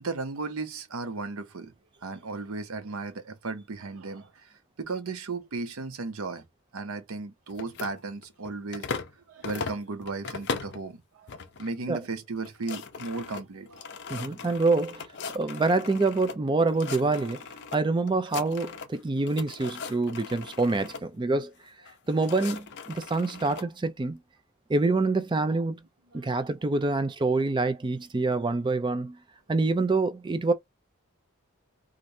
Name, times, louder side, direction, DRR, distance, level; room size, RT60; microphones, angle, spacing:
voice 1, 0.0-1.7 2.0-4.5 4.8-6.4 6.7-8.9 9.3-13.9 26.1-26.4, right 3 dB, 70° right, 0.6 m, -35 dB
sound 1, 7.5-9.2 9.4-10.8 11.3-11.7 12.0-12.1 12.4-16.4 16.7-17.8 18.1-19.0 19.3-21.0 21.8-23.7, left 5 dB, 50° left, 0.5 m, -38 dB
voice 2, 14.1-15.0 15.3-17.4 17.7-21.5 22.1-24.2 24.7-25.8 26.1-29.2 29.5-30.5, right 3 dB, 20° right, 0.3 m, -26 dB
3.2 x 2.5 x 2.6 m
head